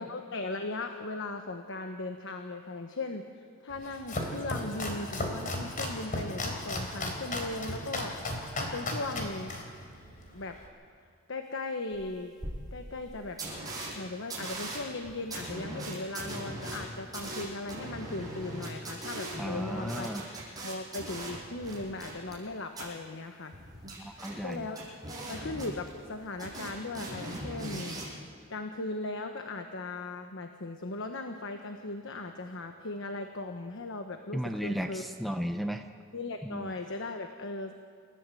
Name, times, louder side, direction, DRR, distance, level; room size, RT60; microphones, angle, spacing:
voice 1, 0.0-9.5 10.3-10.6 11.3-12.3 12.7-13.4 13.9-20.1 20.6-23.5 24.4-24.8 25.3-27.9 28.5-35.1 36.1-37.7, left 2 dB, 65° left, 6 dB, 1.2 m, -38 dB
Domestic sounds home sounds, 3.7-10.7, left 1 dB, 40° left, 3.7 m, -36 dB
sound 1, 11.9-12.0 12.4-12.5 13.0-13.1 13.4-13.9 14.3-22.4 22.7-22.8 23.5-26.1 26.4-28.1, right 1 dB, 20° right, 7.4 m, -39 dB
voice 2, 19.4-20.2 24.0-24.7 34.3-35.8 36.4-36.7, equal, ahead, 6 dB, 0.7 m, -34 dB
28.5 x 14.0 x 7.7 m, 2.1 s
head